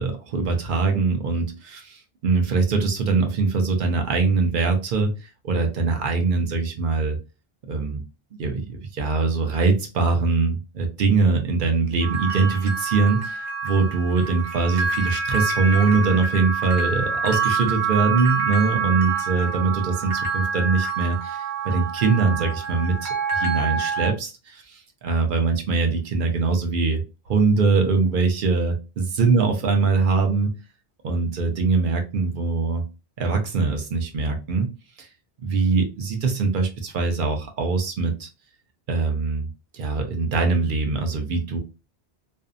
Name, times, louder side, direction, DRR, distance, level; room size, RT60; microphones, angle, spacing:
voice 1, 0.0-7.2 7.7-8.0 8.3-27.0 27.3-30.6 31.0-32.8 33.2-34.7 35.0-35.1 35.4-38.3 38.9-39.5 39.7-41.6, right 4 dB, 55° right, 4 dB, 0.7 m, -22 dB
sound 1, 12.0-24.1, right 5 dB, 90° right, 1.0 m, -27 dB
2.6 x 2.1 x 2.4 m, 0.29 s
omnidirectional pair, 1.1 m